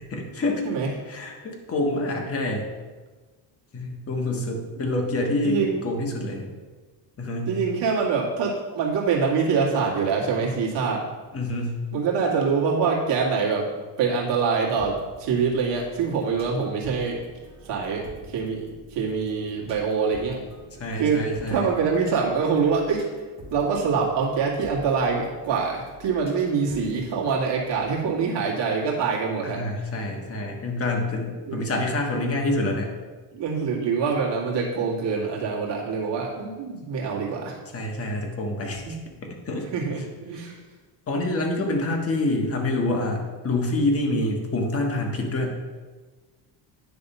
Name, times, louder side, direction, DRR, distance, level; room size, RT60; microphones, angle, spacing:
voice 1, 0.1-0.6 1.1-2.7 3.7-6.5 7.2-7.5 11.3-11.8 20.8-21.7 29.4-32.9 37.7-39.7 40.0-40.1 41.1-45.6, left 2 dB, 30° left, 1 dB, 1.4 m, -27 dB
voice 2, 5.4-5.8 7.5-11.1 11.9-13.7 14.0-17.2 17.6-20.4 21.0-23.0 23.5-29.6 31.5-31.7 33.3-37.6 38.8-39.0 39.7-40.6, right 5 dB, 65° right, -3 dB, 2.1 m, -25 dB
sound 1, 14.8-27.9, equal, 15° right, 1.7 m, -47 dB
9.7 x 3.5 x 5.5 m, 1.3 s
cardioid pair, 120°, 45 cm